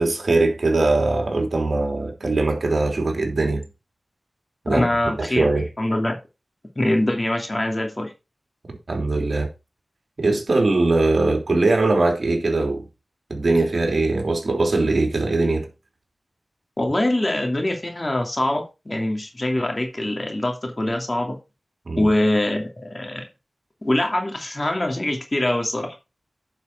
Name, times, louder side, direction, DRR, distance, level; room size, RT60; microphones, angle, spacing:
voice 1, 0.0-3.6 4.6-4.8 5.2-5.7 8.9-9.5 10.2-12.9 13.3-15.7 21.9-22.1, right 2 dB, 65° right, 3.1 m, -21 dB
voice 2, 4.7-5.5 5.8-6.2 6.8-8.1 16.8-21.4 22.0-23.3 23.8-26.0, left 1 dB, 35° left, 2.7 m, -23 dB
10.5 x 5.6 x 4.6 m
wide cardioid pair, 50°, 0 cm